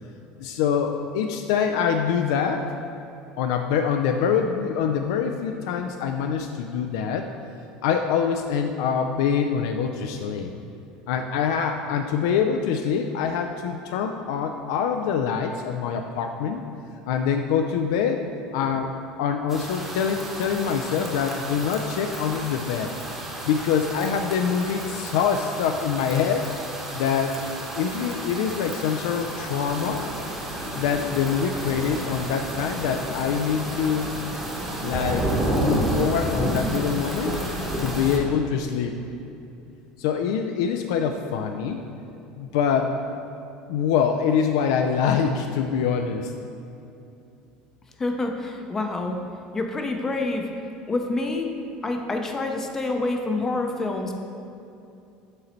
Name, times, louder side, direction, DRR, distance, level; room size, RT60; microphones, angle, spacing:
voice 1, 0.4-2.7 3.4-7.3 7.8-10.5 11.1-16.6 17.1-18.2 18.5-22.9 23.5-26.5 26.9-27.4 27.8-30.1 30.7-34.1 34.8-37.3 37.8-38.9 40.0-41.8 42.4-43.0 43.7-46.3, left 7 dB, 90° left, 5 dB, 0.3 m, -25 dB
sound 1, 19.5-38.2, right 1 dB, 10° right, 0.9 m, -31 dB
voice 2, 48.0-49.2 49.5-50.4 50.9-51.5 51.8-54.2, left 2 dB, 15° left, 3 dB, 0.5 m, -27 dB
6.8 x 4.0 x 4.3 m, 2.7 s
cardioid pair, 155°, 3 cm